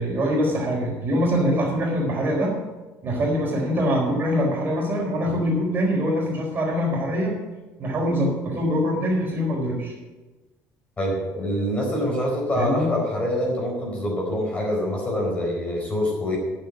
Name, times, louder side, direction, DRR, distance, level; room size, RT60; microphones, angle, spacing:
voice 1, 0.0-2.5 3.0-7.3 7.8-9.9 12.5-12.9, equal, 35° right, -1 dB, 4.3 m, -23 dB
voice 2, 11.0-16.4, left 1 dB, 20° left, -2 dB, 4.3 m, -25 dB
9.3 x 7.9 x 8.8 m, 1.1 s
cardioid pair, 130°, 6 cm